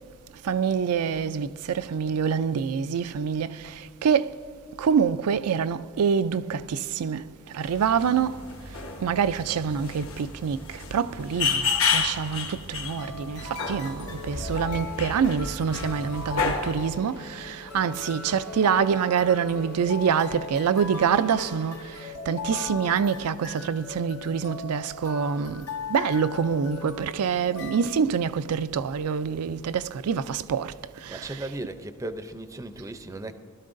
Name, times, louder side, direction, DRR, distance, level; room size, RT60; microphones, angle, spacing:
voice 1, 0.4-4.4 4.8-7.2 7.5-8.4 9.0-22.0 22.3-30.7 31.0-31.5, right 7 dB, 85° right, 0.4 m, -26 dB
sound 1, 7.6-16.9, left 5 dB, 65° left, 1.2 m, -31 dB
sound 2, 13.0-28.0, left 4 dB, 80° left, 0.8 m, -39 dB
sound 3, 14.3-22.2, left 1 dB, 45° left, 0.7 m, -47 dB
voice 2, 31.1-33.3, right 1 dB, 15° right, 0.5 m, -36 dB
19.5 x 12.5 x 2.6 m
head